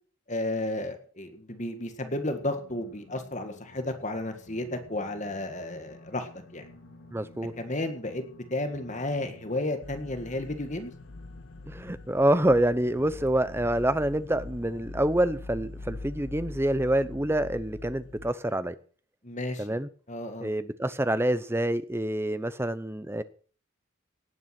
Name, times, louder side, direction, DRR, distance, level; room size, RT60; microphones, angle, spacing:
voice 1, 0.3-6.7 7.6-8.2 8.5-10.9 19.2-19.7 20.1-20.5, left 1 dB, 35° left, 7 dB, 1.8 m, -33 dB
sound 1, 2.1-17.4, left 2 dB, 55° left, 2.8 m, -53 dB
voice 2, 7.1-7.5 11.7-18.8 19.6-19.9 20.4-23.2, right 1 dB, 10° right, 13 dB, 0.8 m, -27 dB
sound 2, 9.8-18.3, left 2 dB, 75° left, 1.0 m, -43 dB
18.0 x 9.4 x 6.0 m, 0.43 s
head